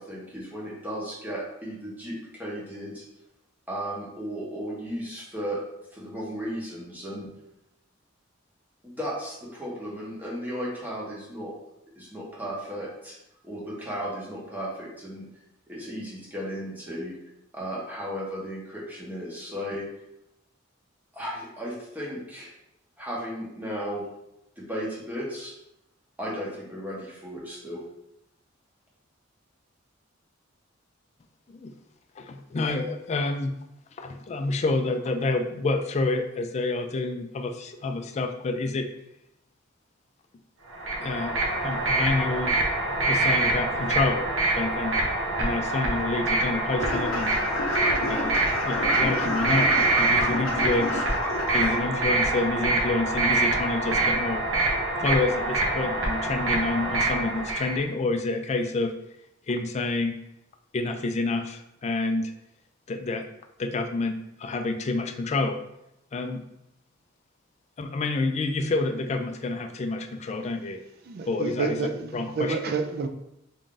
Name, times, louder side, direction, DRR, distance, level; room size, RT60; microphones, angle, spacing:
voice 1, 0.0-3.0 3.7-5.6 5.9-7.3 8.8-11.5 12.0-13.2 13.4-15.3 15.7-17.2 17.5-19.9 21.1-22.5 23.0-24.1 24.6-25.5 26.2-27.8, equal, 10° right, -5 dB, 0.9 m, -35 dB
voice 2, 32.2-33.5 34.0-38.9 41.0-41.3 41.6-42.6 43.1-44.3 44.5-47.4 48.0-49.7 50.0-51.0 51.5-54.5 55.0-58.9 59.5-60.1 60.7-62.3 62.9-63.3 63.6-65.6 66.1-66.4 67.8-70.8 71.3-72.7, left 3 dB, 35° left, 6 dB, 0.3 m, -28 dB
sound 1, 40.7-57.8, right 2 dB, 70° right, 0.8 m, -25 dB
sound 2, 46.8-51.8, left 2 dB, 80° left, 0.6 m, -30 dB
voice 3, 71.1-72.1 72.3-73.1, right 5 dB, 50° right, 7 dB, 0.4 m, -29 dB
3.5 x 2.6 x 3.7 m, 0.84 s
head